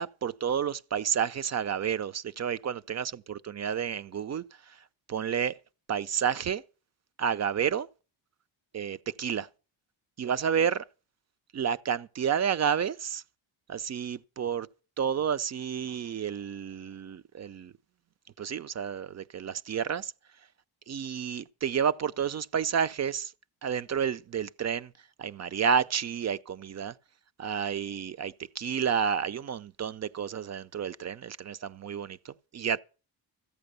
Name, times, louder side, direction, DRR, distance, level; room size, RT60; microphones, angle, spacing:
voice 1, 0.0-4.4 5.1-5.5 5.9-6.6 7.2-7.9 8.7-9.5 10.2-10.8 11.5-13.2 13.7-14.7 15.0-17.7 18.4-20.1 20.9-23.3 23.6-24.9 25.2-26.9 27.4-32.8, right 7 dB, 35° right, 0.5 m, -30 dB
14.0 x 8.5 x 6.7 m
cardioid pair, 100°, 48 cm